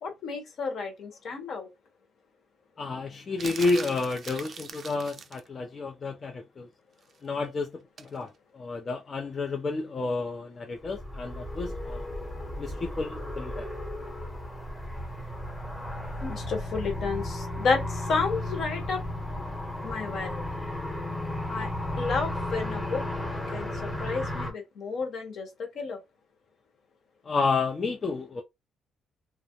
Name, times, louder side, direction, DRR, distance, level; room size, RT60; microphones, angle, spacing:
voice 1, 0.0-1.7 16.2-19.0 19.8-20.4 21.5-21.7 22.0-23.0 23.5-25.5 25.7-26.0, left 4 dB, 65° left, 1.0 m, -31 dB
voice 2, 2.8-6.7 7.2-12.0 12.6-13.7 27.2-28.4, left 3 dB, 40° left, 0.4 m, -31 dB
sound 1, 3.4-5.5 8.0-8.2, right 6 dB, 50° right, 0.4 m, -41 dB
sound 2, 10.8-24.5, left 1 dB, 15° left, 0.9 m, -34 dB
2.3 x 2.0 x 2.8 m
cardioid pair, 90°, 0 cm